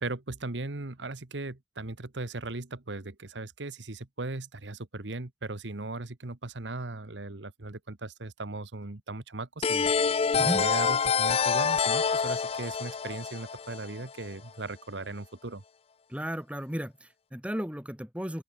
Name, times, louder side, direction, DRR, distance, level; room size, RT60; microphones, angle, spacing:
voice 1, 0.0-15.6, right 2 dB, 80° right, 1.5 m, -38 dB
sound 1, 9.6-14.3, left 6 dB, 35° left, 0.4 m, -26 dB
voice 2, 16.1-18.4, equal, 5° right, 3.2 m, -34 dB
open air
head